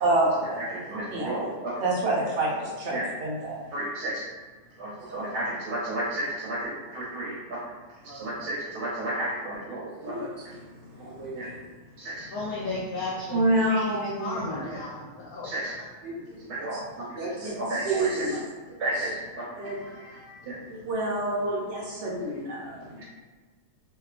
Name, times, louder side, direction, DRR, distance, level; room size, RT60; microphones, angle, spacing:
voice 1, 0.0-0.6 1.1-1.3 1.8-3.6 5.1-5.3 8.1-8.3 10.0-10.3 11.0-11.5 13.3-14.4 16.0-16.7 17.2-17.5 17.8-18.4 19.6-19.8 20.7-23.0, right 1 dB, 60° right, -4 dB, 0.8 m, -28 dB
voice 2, 0.6-1.8 2.6-3.1 3.7-4.2 4.8-7.7 8.1-10.3 11.0-11.5 12.0-12.3 15.4-15.7 16.4-18.3 18.8-20.6 22.2-22.3 23.0-23.1, right 1 dB, 80° right, -7 dB, 1.1 m, -33 dB
voice 3, 10.9-11.7 12.2-15.5 15.8-15.9 20.4-20.9, left 2 dB, 70° left, -7 dB, 1.0 m, -36 dB
2.8 x 2.2 x 2.4 m, 1.4 s
omnidirectional pair, 1.7 m